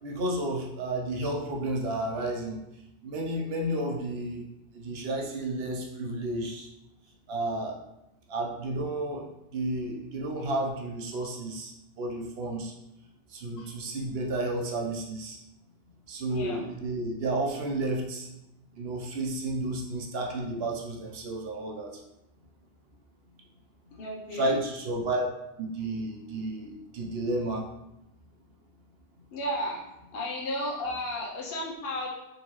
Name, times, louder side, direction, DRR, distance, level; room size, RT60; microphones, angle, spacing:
voice 1, 0.0-2.6 3.0-4.4 4.7-6.7 7.3-7.8 8.3-9.3 9.5-12.7 13.3-15.4 16.1-18.3 18.7-22.0 24.3-25.2 25.6-27.7, right 1 dB, 70° right, 0 dB, 1.0 m, -32 dB
voice 2, 16.3-16.7 23.9-24.6 29.3-29.8 30.1-32.1, left 1 dB, 70° left, -3 dB, 0.9 m, -33 dB
4.0 x 3.7 x 3.0 m, 0.87 s
omnidirectional pair, 1.1 m